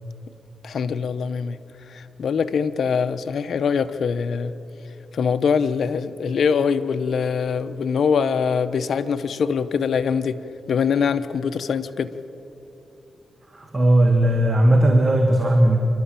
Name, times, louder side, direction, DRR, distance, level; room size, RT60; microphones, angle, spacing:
voice 1, 0.6-1.6 1.9-4.5 5.1-10.4 10.7-12.1, left 6 dB, 70° left, 10 dB, 0.8 m, -23 dB
voice 2, 13.5-15.8, right 1 dB, 30° right, 3 dB, 2.0 m, -17 dB
27.5 x 12.5 x 8.9 m, 3.0 s
cardioid pair, 75°, 0 cm